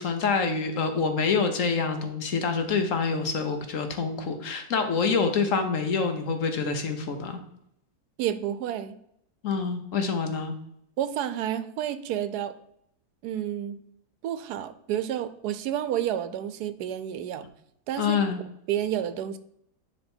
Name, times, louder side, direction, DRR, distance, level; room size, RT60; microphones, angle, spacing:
voice 1, 0.0-7.4 9.4-10.5 18.0-18.4, left 5 dB, 60° left, 6 dB, 1.1 m, -26 dB
voice 2, 8.2-9.0 11.0-12.5 13.2-13.8 14.2-17.5 17.9-18.2 18.7-19.4, right 10 dB, 80° right, 12 dB, 1.1 m, -30 dB
9.9 x 3.3 x 4.4 m, 0.74 s
omnidirectional pair, 1.7 m